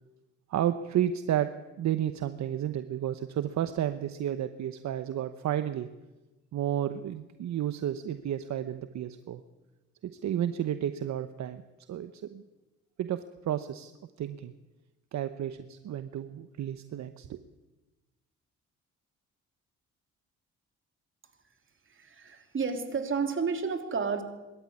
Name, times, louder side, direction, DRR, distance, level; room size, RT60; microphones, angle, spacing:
voice 1, 0.5-5.9 6.5-9.4 10.0-11.6 11.9-12.4 13.0-13.9 14.2-14.5 15.1-17.4, right 11 dB, 65° right, 11 dB, 1.0 m, -32 dB
voice 2, 21.9-24.2, right 5 dB, 40° right, 6 dB, 3.3 m, -31 dB
23.5 x 13.0 x 9.7 m, 1.1 s
cardioid pair, 90°, 30 cm